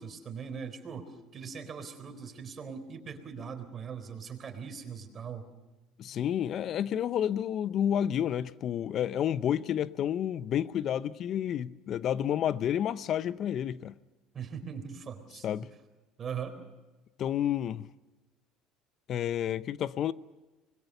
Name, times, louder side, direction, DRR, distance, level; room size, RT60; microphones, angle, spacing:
voice 1, 0.0-5.5 14.3-15.5 16.2-16.6, right 6 dB, 40° right, 4.0 m, -40 dB
voice 2, 6.0-13.9 15.4-15.7 17.2-17.9 19.1-20.1, left 10 dB, 50° left, 0.7 m, -30 dB
25.0 x 21.5 x 6.8 m
hypercardioid pair, 75°, 0 cm